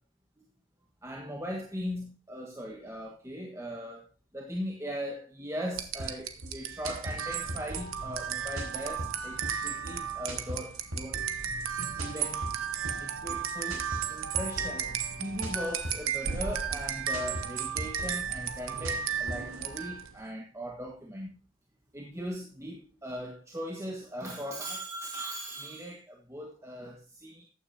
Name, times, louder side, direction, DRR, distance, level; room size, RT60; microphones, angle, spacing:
voice 1, 1.0-4.1 4.3-11.2 12.0-12.4 13.0-21.4 21.9-27.5, equal, 15° right, 1.5 m, -39 dB
sound 1, 5.7-20.2, right 7 dB, 70° right, 1.2 m, -34 dB
sound 2, 6.0-19.6, equal, 90° right, 4.6 m, -40 dB
14.5 x 9.6 x 2.7 m
head